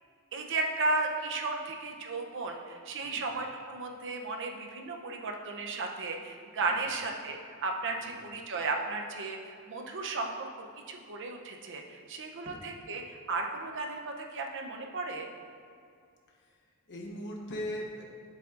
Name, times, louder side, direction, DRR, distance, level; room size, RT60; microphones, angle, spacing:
voice 1, 0.3-10.5 10.9-15.3, right 3 dB, 55° right, 2 dB, 0.7 m, -34 dB
voice 2, 16.9-18.0, equal, 55° left, -1 dB, 1.0 m, -40 dB
7.7 x 6.9 x 2.5 m, 2.3 s
head